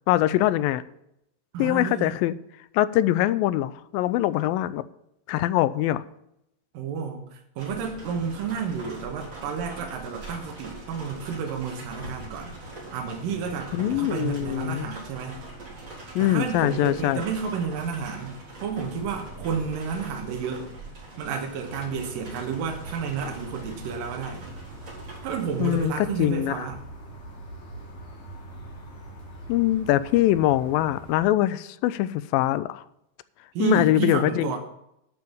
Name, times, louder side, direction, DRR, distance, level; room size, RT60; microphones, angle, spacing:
voice 1, 0.1-0.8 1.6-2.4 2.7-4.8 5.3-6.0 13.7-14.9 16.2-17.2 25.6-26.7 29.5-32.8 33.6-34.5, left 14 dB, 85° left, 16 dB, 2.3 m, -23 dB
voice 2, 1.5-2.1 6.7-12.5 12.9-15.4 16.2-20.7 21.2-24.5 25.2-26.8 33.5-34.6, right 6 dB, 75° right, 2 dB, 2.9 m, -31 dB
sound 1, 7.6-25.9, right 2 dB, 35° right, 4.6 m, -42 dB
sound 2, 21.6-31.2, right 1 dB, 50° left, 3.9 m, -43 dB
11.5 x 5.8 x 7.1 m, 0.80 s
omnidirectional pair, 4.0 m